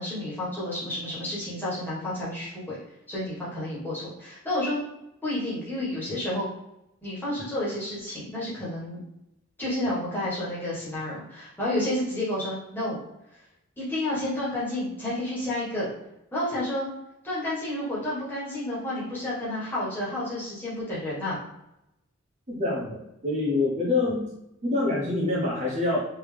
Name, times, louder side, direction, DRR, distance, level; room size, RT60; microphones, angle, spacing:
voice 1, 0.0-2.8 3.1-4.8 5.2-6.5 7.0-9.0 9.6-13.0 13.8-15.9 16.3-16.9 17.2-21.4, left 1 dB, 10° left, -8 dB, 1.4 m, -30 dB
voice 2, 22.5-24.3 24.6-26.0, left 2 dB, 30° right, -5 dB, 0.8 m, -26 dB
3.5 x 2.9 x 3.3 m, 0.85 s
head